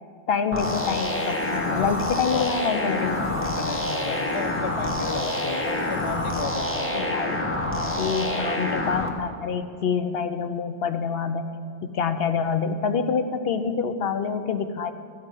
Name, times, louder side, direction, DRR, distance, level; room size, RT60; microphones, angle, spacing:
voice 1, 0.3-3.5 6.9-11.5 11.8-14.9, left 6 dB, 60° left, 9 dB, 0.8 m, -27 dB
sound 1, 0.5-9.1, left 1 dB, 10° left, 0.9 m, -27 dB
sound 2, 0.6-6.4, left 1 dB, 85° left, 1.8 m, -44 dB
voice 2, 1.7-2.0 2.3-2.5 3.4-7.1, left 5 dB, 40° left, 9 dB, 0.5 m, -34 dB
14.0 x 4.9 x 9.0 m, 2.3 s
omnidirectional pair, 1.2 m